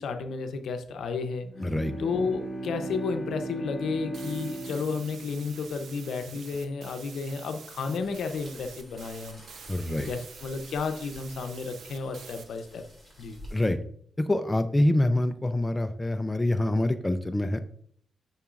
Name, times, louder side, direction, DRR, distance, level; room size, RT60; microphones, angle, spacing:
voice 1, 0.0-1.5 2.0-9.4 10.0-12.8 13.2-13.4, left 4 dB, 70° left, 7 dB, 0.7 m, -32 dB
Bowed string instrument, 1.4-6.3, right 2 dB, 30° left, 1.8 m, -38 dB
voice 2, 1.6-1.9 9.7-10.1 13.5-13.8 14.2-17.6, left 1 dB, 10° left, 8 dB, 0.4 m, -25 dB
sound 1, 4.1-12.5, right 6 dB, 65° right, 0.6 m, -48 dB
sound 2, 8.0-13.7, equal, 20° right, 2.2 m, -50 dB
7.0 x 5.7 x 2.5 m, 0.63 s
cardioid pair, 125°, 0 cm